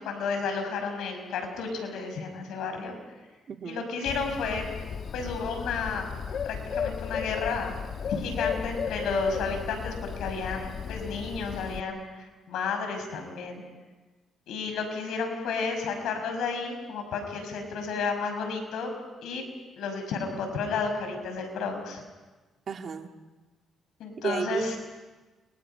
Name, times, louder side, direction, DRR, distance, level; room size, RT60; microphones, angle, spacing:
voice 1, 0.0-2.9 3.6-4.7 5.1-6.1 6.4-7.8 8.2-13.6 14.5-18.9 19.2-19.4 19.8-22.0 24.0-24.8, left 4 dB, 85° left, 5 dB, 5.8 m, -32 dB
voice 2, 3.5-3.9 22.7-23.1 24.2-24.7, right 6 dB, 55° right, 5 dB, 2.0 m, -32 dB
Bird, 4.1-11.8, left 7 dB, 55° left, 1.2 m, -34 dB
29.5 x 29.0 x 5.7 m, 1.3 s
cardioid pair, 90°, 0 cm